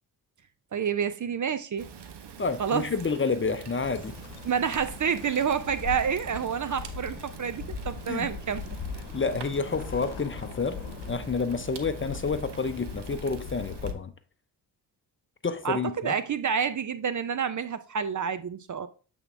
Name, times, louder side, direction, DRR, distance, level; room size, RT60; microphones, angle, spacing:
voice 1, 0.7-1.9 2.6-2.9 4.4-8.8 15.6-18.9, right 7 dB, 40° right, 0.7 m, -28 dB
Fire, 1.8-13.9, right 6 dB, 55° right, 1.1 m, -45 dB
voice 2, 2.4-4.1 8.1-8.3 9.1-10.8 11.1-14.1 15.4-16.1, left 4 dB, 25° left, 0.8 m, -29 dB
Bird, 3.8-13.9, left 7 dB, 70° left, 1.0 m, -40 dB
8.0 x 3.9 x 3.4 m
hypercardioid pair, 45°, 48 cm